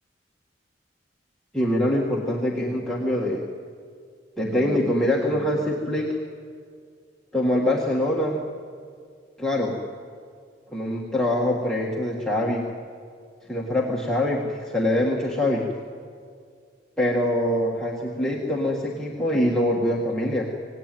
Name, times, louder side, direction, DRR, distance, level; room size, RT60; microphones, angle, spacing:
voice 1, 1.5-3.5 4.4-6.2 7.3-8.4 9.4-9.8 10.7-12.7 13.5-15.7 17.0-20.5, left 1 dB, 5° left, -4 dB, 1.8 m, -24 dB
25.5 x 18.0 x 9.3 m, 2.2 s
head